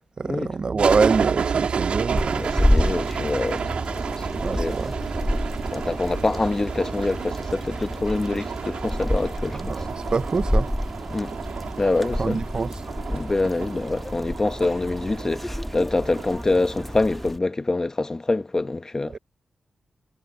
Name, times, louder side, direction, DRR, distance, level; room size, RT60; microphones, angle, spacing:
voice 1, 0.2-2.5 4.4-5.0 9.5-10.7 12.2-12.8 19.1-19.2, right 4 dB, 45° right, 0.3 m, -25 dB
sound 1, 0.8-17.3, right 6 dB, 75° right, 1.7 m, -31 dB
voice 2, 2.1-4.8 5.7-9.8 11.1-11.3 11.8-12.4 13.1-19.2, left 2 dB, 30° left, 1.0 m, -26 dB
sound 2, 2.1-17.4, left 1 dB, 5° left, 1.1 m, -29 dB
cardioid pair, 85°, 2 cm